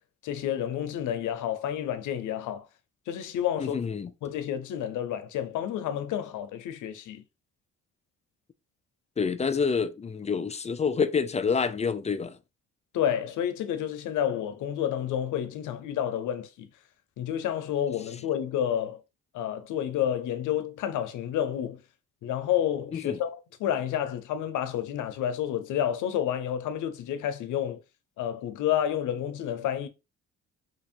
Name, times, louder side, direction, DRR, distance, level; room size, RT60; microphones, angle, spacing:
voice 1, 0.2-2.7 3.1-3.8 4.2-7.2 12.9-16.7 17.2-19.0 19.3-21.8 22.2-27.8 28.2-29.9, left 10 dB, 80° left, 0.7 m, -30 dB
voice 2, 3.6-4.1 9.2-12.4 22.9-23.2, left 5 dB, 25° left, 0.4 m, -27 dB
3.0 x 2.6 x 4.3 m
cardioid pair, 90°, 30 cm